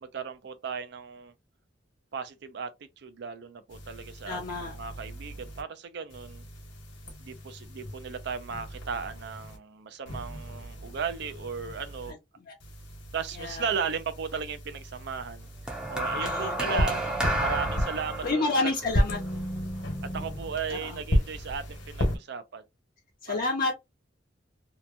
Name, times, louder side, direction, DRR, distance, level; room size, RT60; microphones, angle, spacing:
voice 1, 0.0-1.3 2.1-6.4 7.2-12.1 13.1-18.7 20.0-22.6 23.3-23.4, right 6 dB, 60° right, 0.5 m, -36 dB
sound 1, 3.7-5.6 6.1-9.6 10.0-12.1 12.6-18.3 18.8-22.2, equal, 70° left, 1.2 m, -34 dB
voice 2, 4.3-4.7 12.1-12.2 12.5-12.6 13.4-13.7 16.2-17.0 18.2-19.2 20.7-21.0 23.2-23.7, left 3 dB, 50° left, 0.6 m, -30 dB
sound 2, 15.7-20.1 21.0-21.3, right 1 dB, 5° right, 0.5 m, -32 dB
2.9 x 2.2 x 2.5 m
head